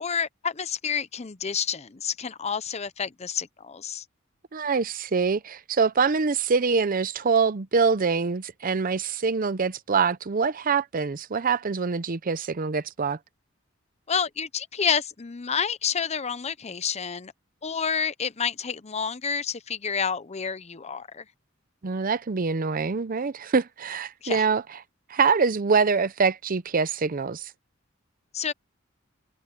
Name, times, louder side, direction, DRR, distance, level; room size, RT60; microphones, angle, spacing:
voice 1, 0.0-4.0 14.1-17.3 17.6-21.2 24.2-24.4 28.3-28.5, left 6 dB, 30° left, 0.7 m, -29 dB
voice 2, 4.5-13.2 21.8-24.6 25.1-27.5, right 5 dB, 45° right, 0.6 m, -24 dB
head